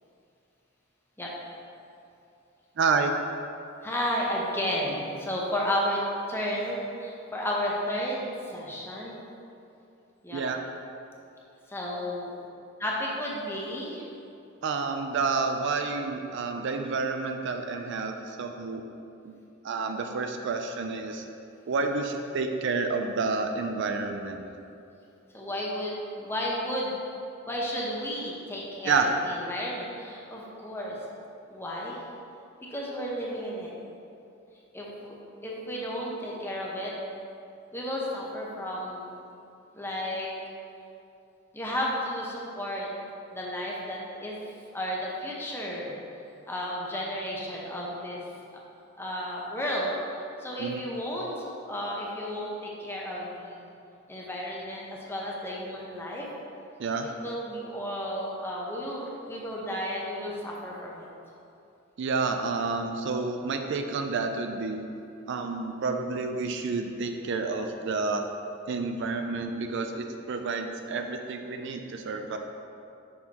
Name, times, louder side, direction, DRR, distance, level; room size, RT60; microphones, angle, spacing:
voice 1, 2.8-3.1 10.3-10.6 14.6-18.8 19.2-19.3 19.6-21.2 21.7-24.4 28.9-29.1 50.6-50.8 56.8-57.1 62.0-64.9 65.3-68.3 68.7-72.4, right 4 dB, 60° right, 5 dB, 0.4 m, -29 dB
voice 2, 3.8-6.0 6.3-9.2 10.2-10.4 11.7-12.4 12.8-14.1 25.3-27.0 27.5-31.0 31.5-32.0 32.7-33.7 34.7-35.1 35.4-36.9 37.7-39.1 39.7-40.3 41.5-42.9 43.3-44.4 44.7-46.0 46.5-48.2 49.0-53.7 54.1-56.3 57.2-61.1, equal, 10° left, -4 dB, 0.8 m, -33 dB
6.3 x 5.5 x 2.9 m, 2.7 s
head